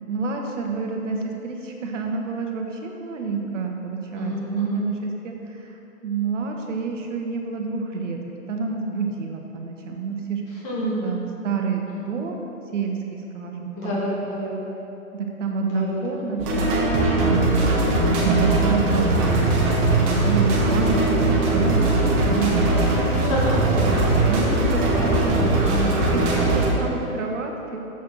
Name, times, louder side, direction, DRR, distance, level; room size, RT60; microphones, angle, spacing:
voice 1, 0.0-8.2 8.5-10.6 11.0-12.5 12.7-14.0 15.1-16.8 17.1-17.8 18.1-19.4 19.7-21.2 21.5-23.9 24.3-25.4 26.1-27.8, right 5 dB, 60° right, 2 dB, 1.2 m, -28 dB
voice 2, 4.1-4.8 10.5-11.0 11.9-12.0 13.8-14.5 15.6-16.2 23.1-24.0 24.9-26.0, left 1 dB, 25° left, -5 dB, 1.9 m, -29 dB
sound 1, 16.4-26.7, right 2 dB, 20° right, 1.0 m, -20 dB
7.1 x 4.7 x 6.1 m, 2.9 s
hypercardioid pair, 135°, 43 cm